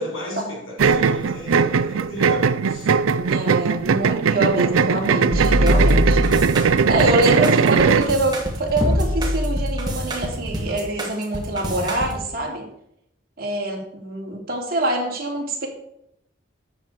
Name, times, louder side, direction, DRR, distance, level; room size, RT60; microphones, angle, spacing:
voice 1, 0.0-2.9, equal, 85° left, 4.5 m, -34 dB
sound 1, 0.8-8.1, right 5 dB, 85° right, 0.5 m, -19 dB
voice 2, 3.0-6.2 6.9-12.6 13.4-15.7, right 1 dB, 45° right, 2.8 m, -24 dB
sound 2, 5.3-12.1, equal, 20° right, 2.0 m, -23 dB
12.5 x 8.1 x 4.7 m
head